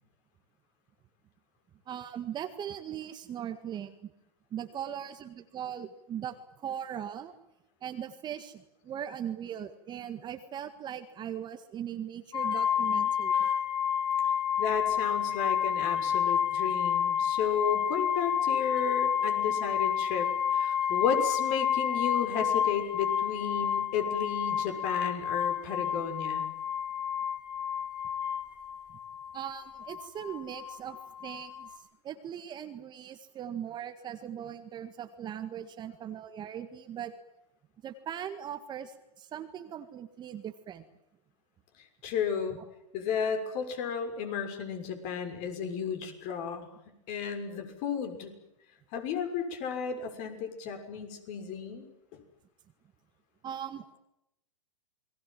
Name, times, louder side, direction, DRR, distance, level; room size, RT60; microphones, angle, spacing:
voice 1, 1.9-4.1 4.5-7.3 7.8-13.4 19.0-19.3 22.4-22.6 28.9-29.0 29.3-37.1 37.8-40.9 53.4-54.0, right 9 dB, 25° right, 8 dB, 1.8 m, -39 dB
sound 1, 12.3-31.7, left 8 dB, 25° left, 5.6 m, -30 dB
voice 2, 14.6-26.5 42.0-42.6 42.9-48.3 48.9-51.9 52.1-52.2, left 7 dB, 45° left, 7 dB, 6.3 m, -33 dB
28.5 x 21.5 x 7.6 m, 0.82 s
hypercardioid pair, 130°, 18 cm